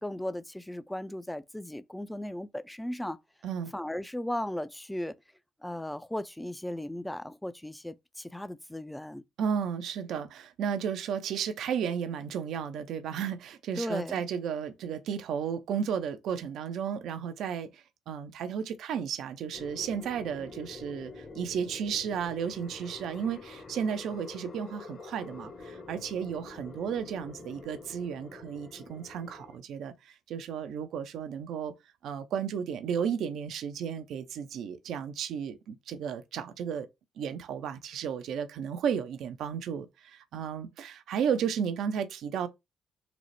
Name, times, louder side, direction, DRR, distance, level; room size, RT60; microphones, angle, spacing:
voice 1, 0.0-3.2 3.7-5.1 5.6-9.2 13.8-14.2, left 1 dB, 10° left, 0.4 m, -36 dB
voice 2, 9.4-31.7 32.0-36.9 37.2-42.5, right 7 dB, 70° right, 0.4 m, -33 dB
sound 1, 19.5-29.6, left 3 dB, 50° left, 1.2 m, -46 dB
3.9 x 2.0 x 3.1 m
hypercardioid pair, 50°, 0 cm